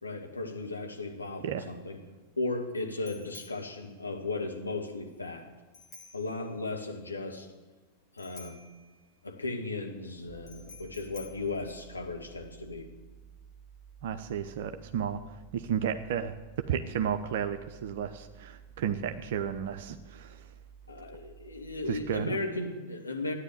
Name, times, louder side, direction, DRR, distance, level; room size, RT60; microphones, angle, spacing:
voice 1, 0.0-2.0 2.4-5.5 6.1-7.5 8.1-8.6 9.2-12.9 20.9-23.3, left 2 dB, 80° left, 1 dB, 2.0 m, -36 dB
Bicycle bell, 1.4-12.5, left 4 dB, 35° left, 3.8 m, -55 dB
sound 1, 10.3-22.3, right 7 dB, 10° right, 0.7 m, -53 dB
voice 2, 14.0-15.2 15.5-20.4 21.9-22.4, right 8 dB, 55° right, 7 dB, 0.7 m, -33 dB
13.5 x 9.7 x 8.1 m, 1.3 s
figure-of-eight pair, 90°, 0 cm